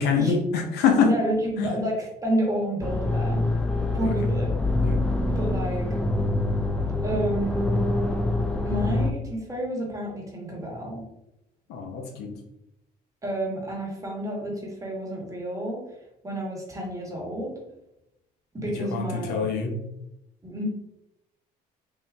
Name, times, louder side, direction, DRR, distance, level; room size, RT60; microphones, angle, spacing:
voice 1, 0.0-1.1 1.6-1.7 4.0-4.1 4.8-5.0 11.7-12.3 18.8-19.7, left 6 dB, 80° left, 2 dB, 0.8 m, -25 dB
voice 2, 1.0-3.4 3.9-4.5 5.3-5.9 7.0-7.8 8.6-11.0 13.2-15.8 16.2-17.6 18.5-19.5 20.4-20.6, right 1 dB, 20° right, -1 dB, 1.3 m, -30 dB
sound 1, 2.8-9.1, left 2 dB, 5° left, 0.3 m, -25 dB
3.6 x 2.7 x 3.4 m, 0.85 s
cardioid pair, 110°, 17 cm